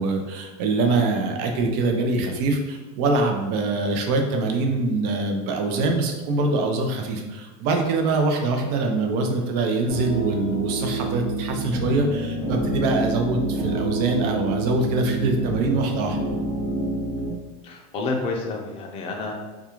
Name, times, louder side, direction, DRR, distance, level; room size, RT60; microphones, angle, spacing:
voice 1, 0.0-16.2, right 3 dB, 55° right, 3 dB, 0.5 m, -24 dB
sound 1, 9.9-17.3, right 2 dB, 80° right, 1.0 m, -28 dB
voice 2, 17.6-19.3, left 3 dB, 30° left, 0 dB, 0.4 m, -29 dB
2.3 x 2.3 x 2.9 m, 1.2 s
supercardioid pair, 125°, 18 cm